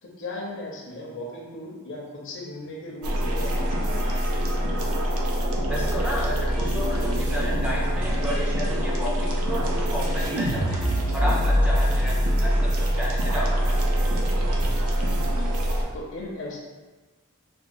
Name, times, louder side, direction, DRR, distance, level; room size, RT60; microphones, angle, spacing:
voice 1, 0.0-4.3 14.8-15.2 15.9-16.6, left 1 dB, 60° left, -2 dB, 0.7 m, -37 dB
sound 1, 3.0-15.8, equal, 80° right, 0.5 m, -24 dB
voice 2, 5.6-14.1, equal, 5° right, -5 dB, 0.4 m, -33 dB
4.3 x 2.3 x 2.5 m, 1.3 s
head